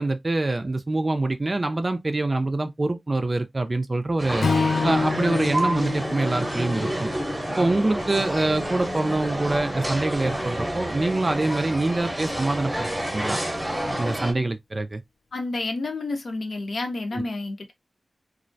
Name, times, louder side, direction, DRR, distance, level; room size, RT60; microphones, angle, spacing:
voice 1, 0.0-4.5 4.8-7.1 7.6-13.4 14.0-15.0 17.1-17.2, right 2 dB, 40° right, 0.4 m, -25 dB
sound 1, 4.2-14.3, right 1 dB, 10° right, 0.8 m, -29 dB
Strum, 4.4-8.7, left 4 dB, 85° left, 0.3 m, -28 dB
voice 2, 15.3-17.7, left 2 dB, 70° left, 0.7 m, -30 dB
2.4 x 2.0 x 2.5 m
wide cardioid pair, 65°, 0 cm